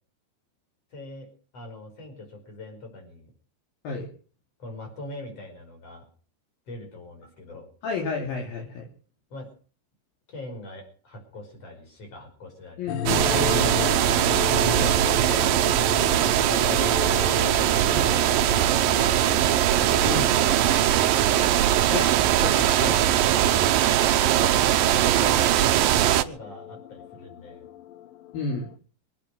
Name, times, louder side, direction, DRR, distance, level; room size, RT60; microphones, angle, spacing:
voice 1, 0.9-3.3 4.6-6.0 6.7-7.7 9.3-9.5 10.3-13.0 14.6-15.7 15.9-19.5 20.0-21.1 24.3-27.7, left 2 dB, 35° left, 3 dB, 6.0 m, -41 dB
voice 2, 7.8-8.9 12.8-14.1 20.0-20.4 21.9-22.1 22.4-23.4 28.3-28.7, left 4 dB, 55° left, 1 dB, 4.1 m, -31 dB
sound 1, 12.9-28.8, left 11 dB, 80° left, 2.0 m, -36 dB
sound 2, 13.1-26.2, right 12 dB, 80° right, 2.1 m, -21 dB
24.5 x 9.3 x 6.3 m, 0.42 s
omnidirectional pair, 5.2 m